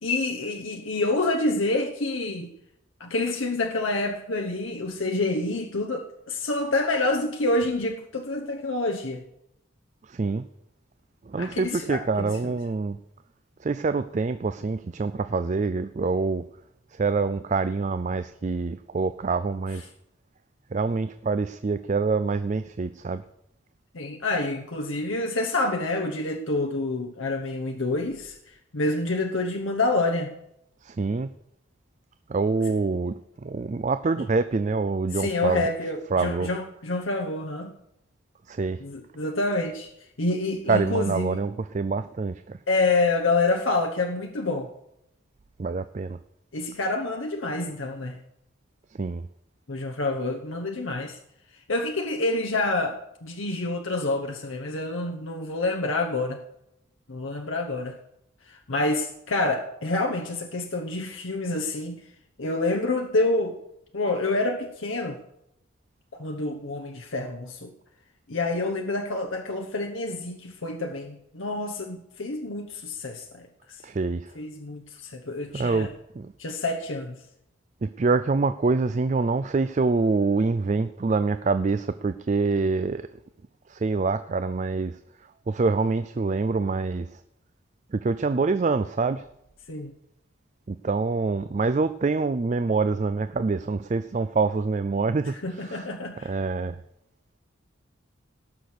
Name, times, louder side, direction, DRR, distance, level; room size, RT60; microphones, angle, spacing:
voice 1, 0.0-2.5 3.0-9.2 11.4-12.3 23.9-28.4 28.7-30.3 35.1-37.7 38.8-39.9 40.2-41.4 42.7-44.7 46.5-48.2 49.7-51.2 51.7-56.4 57.1-58.0 58.5-62.0 62.4-63.5 63.9-65.2 66.1-67.7 68.3-73.8 74.4-75.9 76.4-77.2 89.7-89.9 95.4-96.3, left 2 dB, 75° left, 4 dB, 1.0 m, -27 dB
voice 2, 10.1-10.5 11.3-13.0 13.6-16.5 16.9-19.9 20.7-23.2 30.8-31.3 32.3-35.7 36.1-36.5 38.5-38.8 40.7-42.6 45.6-46.2 48.9-49.3 73.8-74.3 75.5-75.9 76.1-76.3 77.8-83.1 83.7-85.0 85.5-87.2 87.9-89.3 90.7-95.9 96.2-96.8, right 4 dB, 35° right, 12 dB, 0.4 m, -26 dB
18.0 x 6.1 x 6.6 m, 0.82 s
head